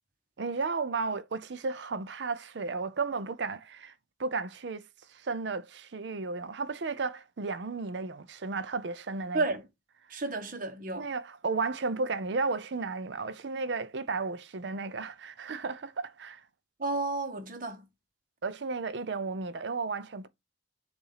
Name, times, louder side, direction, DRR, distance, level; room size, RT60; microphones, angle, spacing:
voice 1, 0.4-3.9 4.2-4.8 5.1-9.4 11.0-16.4 18.4-20.3, right 4 dB, 70° right, 0.6 m, -33 dB
voice 2, 9.3-9.7 10.1-11.1 16.8-17.8, right 2 dB, 50° right, 1.1 m, -32 dB
6.9 x 2.6 x 5.6 m
head